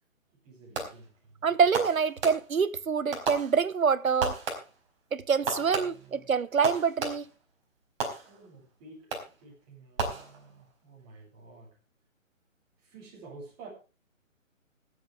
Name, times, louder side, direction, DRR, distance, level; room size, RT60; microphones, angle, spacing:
voice 1, 0.4-1.1 5.8-6.1 8.2-9.1 9.4-11.7 12.9-13.7, right 3 dB, 25° right, 7.5 m, -50 dB
Fireworks, 0.7-1.2 1.7-2.7 3.1-3.9 4.2-4.9 5.5-7.4 8.0-8.6 9.1-9.5 10.0-10.7, right 4 dB, 45° right, 4.6 m, -35 dB
voice 2, 1.4-4.4 5.1-7.3, right 6 dB, 85° right, 1.0 m, -26 dB
25.5 x 8.8 x 3.5 m
figure-of-eight pair, 145°, 40 cm